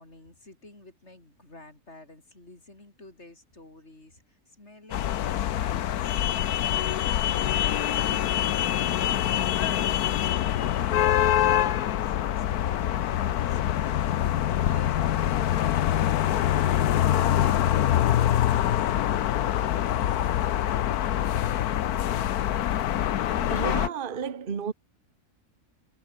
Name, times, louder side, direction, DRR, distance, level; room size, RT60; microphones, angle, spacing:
voice 1, 0.0-9.9, left 2 dB, 45° left, 5.7 m, -50 dB
sound 1, 4.9-23.9, left 11 dB, 75° left, 1.3 m, -25 dB
voice 2, 23.5-24.7, right 7 dB, 35° right, 1.3 m, -33 dB
omnidirectional pair, 1.6 m